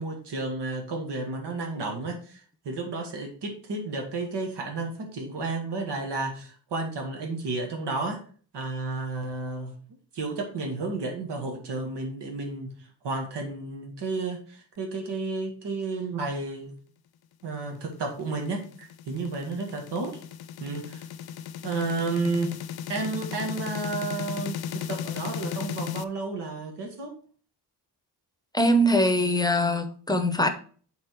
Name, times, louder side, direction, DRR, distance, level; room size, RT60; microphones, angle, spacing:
voice 1, 0.0-8.2 8.5-9.8 10.1-12.7 13.0-16.7 17.4-20.2 20.6-21.0 21.6-22.5 22.9-27.1, right 3 dB, 80° right, 2 dB, 1.9 m, -32 dB
sound 1, 17.9-26.0, left 8 dB, 65° left, 0.6 m, -36 dB
voice 2, 28.5-30.5, equal, 10° left, 8 dB, 0.8 m, -22 dB
8.8 x 4.0 x 4.5 m, 0.43 s
wide cardioid pair, 140°, 41 cm